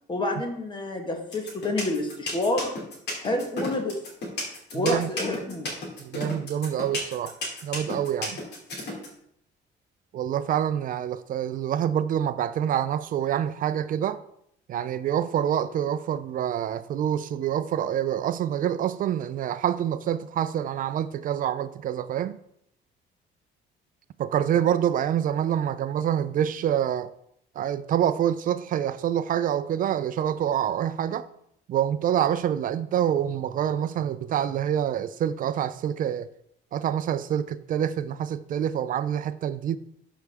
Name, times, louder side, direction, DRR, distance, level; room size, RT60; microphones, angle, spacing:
voice 1, 0.1-2.7 3.2-4.0 4.7-5.8, left 2 dB, 25° left, 1.3 m, -28 dB
sound 1, 1.3-9.1, left 2 dB, 65° left, 2.4 m, -32 dB
voice 2, 4.7-5.1 6.0-7.3 7.6-8.4 10.1-14.2 14.7-22.4 24.2-27.1 27.6-31.3 31.7-36.3 36.7-39.8, right 10 dB, 45° right, 0.4 m, -26 dB
12.5 x 4.7 x 3.4 m
cardioid pair, 150°, 19 cm